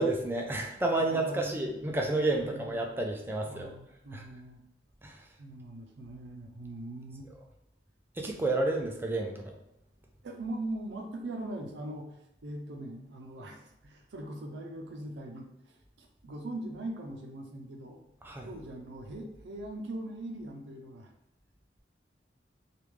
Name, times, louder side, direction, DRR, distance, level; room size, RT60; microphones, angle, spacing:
voice 1, 0.0-3.7 4.1-4.2 5.0-5.2 8.2-9.4 18.2-18.5, right 2 dB, 15° right, 1 dB, 0.3 m, -30 dB
voice 2, 1.0-2.0 2.4-2.7 3.5-4.6 5.4-7.3 10.2-18.0 18.4-21.1, right 1 dB, 75° right, 2 dB, 0.5 m, -41 dB
3.4 x 2.4 x 3.1 m, 0.86 s
head